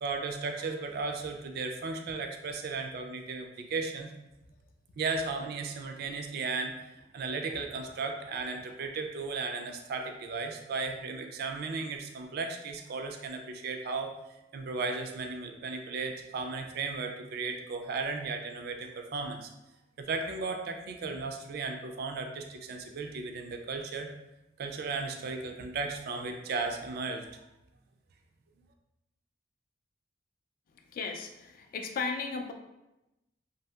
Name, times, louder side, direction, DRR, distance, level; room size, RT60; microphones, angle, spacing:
voice 1, 0.0-4.1 5.0-6.8 7.1-14.1 14.5-19.5 20.0-24.1 24.6-27.4, right 4 dB, 60° right, 4 dB, 0.3 m, -35 dB
voice 2, 30.9-32.5, left 4 dB, 50° left, 4 dB, 0.3 m, -35 dB
2.7 x 2.7 x 2.3 m, 0.94 s
head